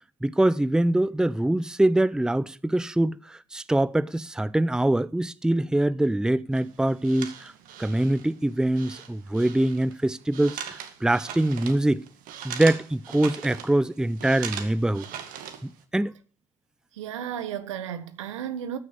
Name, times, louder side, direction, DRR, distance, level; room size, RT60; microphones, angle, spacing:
voice 1, 0.2-7.5 7.8-12.0 12.4-15.0 15.6-16.1, right 1 dB, 5° right, 0.6 m, -24 dB
sound 1, 6.5-15.8, right 9 dB, 65° right, 2.0 m, -40 dB
voice 2, 16.9-18.8, right 9 dB, 85° right, 1.3 m, -33 dB
13.5 x 6.4 x 8.7 m
hypercardioid pair, 60°, 15 cm